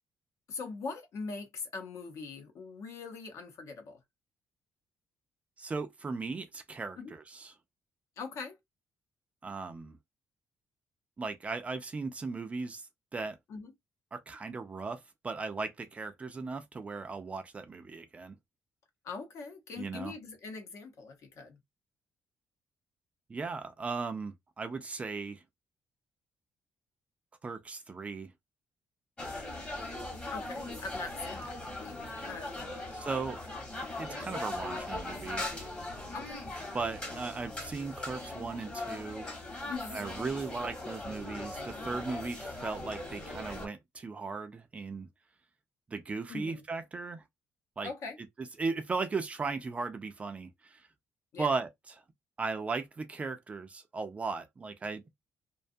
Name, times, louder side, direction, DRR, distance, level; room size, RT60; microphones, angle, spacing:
voice 1, 0.5-4.0 7.0-7.1 8.2-8.6 13.5-13.7 19.0-21.6 30.3-32.9 36.1-36.5 39.7-40.0 42.1-42.2 46.3-46.6 47.8-48.2 51.3-51.5, left 4 dB, 60° left, 0.8 m, -42 dB
voice 2, 5.6-7.5 9.4-10.0 11.2-12.9 13.1-13.4 14.1-18.4 19.8-20.1 23.3-25.4 27.4-28.3 32.9-33.4 33.8-35.5 36.7-39.3 39.9-45.1 45.9-47.2 47.8-47.9 48.6-50.9 51.4-51.7 52.4-55.0, right 4 dB, 20° right, 0.3 m, -37 dB
sound 1, 29.2-43.7, left 2 dB, 20° left, 1.0 m, -40 dB
2.5 x 2.3 x 2.5 m
cardioid pair, 165°, 6 cm